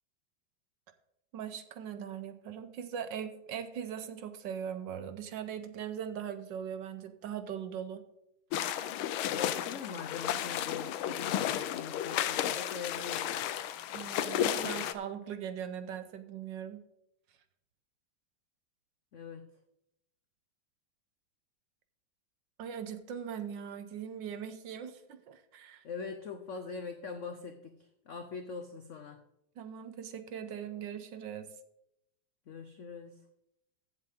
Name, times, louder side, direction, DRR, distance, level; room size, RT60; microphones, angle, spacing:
voice 1, 1.3-8.0 13.9-16.8 22.6-25.8 29.6-31.5, right 8 dB, 70° right, 9 dB, 1.4 m, -40 dB
sound 1, 8.5-14.9, left 11 dB, 90° left, 1.5 m, -33 dB
voice 2, 9.2-13.4 19.1-19.4 25.8-29.2 32.5-33.2, left 5 dB, 70° left, 6 dB, 0.7 m, -42 dB
15.0 x 7.5 x 3.6 m, 0.81 s
omnidirectional pair, 2.2 m